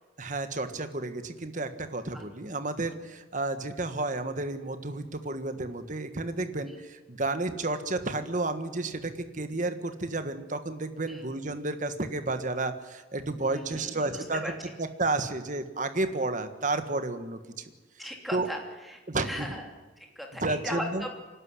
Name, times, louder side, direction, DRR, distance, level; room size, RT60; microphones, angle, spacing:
voice 1, 0.2-14.4 14.8-17.7 18.3-18.5 19.1-19.5 20.4-21.0, right 2 dB, 45° right, 9 dB, 1.5 m, -31 dB
voice 2, 13.4-14.5 18.0-19.7 20.0-21.1, equal, ahead, 1 dB, 3.1 m, -38 dB
27.0 x 12.0 x 9.7 m, 1.2 s
head